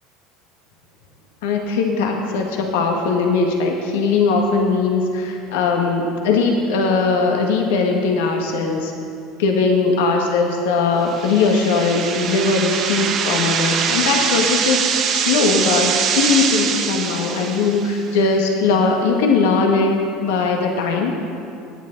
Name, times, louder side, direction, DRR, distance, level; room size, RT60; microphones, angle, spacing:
voice 1, 1.4-8.9 9.4-21.2, left 4 dB, 85° left, 2 dB, 1.6 m, -19 dB
sound 1, 11.1-18.0, right 7 dB, 50° right, 1.1 m, -23 dB
16.5 x 10.0 x 4.0 m, 2.5 s
supercardioid pair, 100°, 0 cm